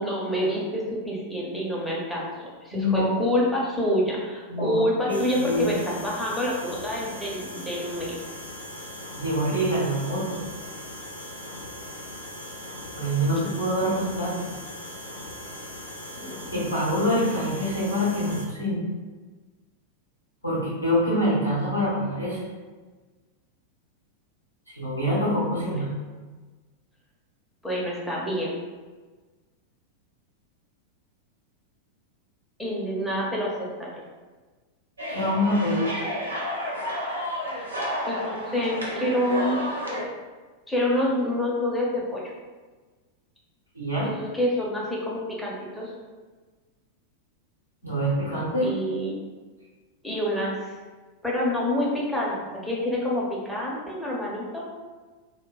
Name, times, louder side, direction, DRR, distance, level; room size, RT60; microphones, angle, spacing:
voice 1, 0.0-2.3 2.6-8.2 16.2-16.5 25.5-25.8 27.6-28.5 32.6-33.9 37.6-37.7 38.1-39.6 40.7-42.2 44.0-45.9 48.6-49.2 50.0-50.8 51.2-52.4 52.6-54.6, left 1 dB, 5° left, -5 dB, 0.7 m, -27 dB
voice 2, 2.7-3.1 4.5-4.8 5.1-5.7 9.1-10.4 12.9-14.5 16.5-18.8 20.4-22.4 24.7-25.9 35.1-35.9 43.7-44.1 47.8-48.7, equal, 90° left, -8 dB, 1.0 m, -25 dB
sound 1, 5.1-18.5, left 1 dB, 75° left, 0.4 m, -39 dB
sound 2, 35.0-40.0, equal, 75° right, 0.7 m, -31 dB
2.2 x 2.1 x 3.8 m, 1.3 s
figure-of-eight pair, 90°, 0 cm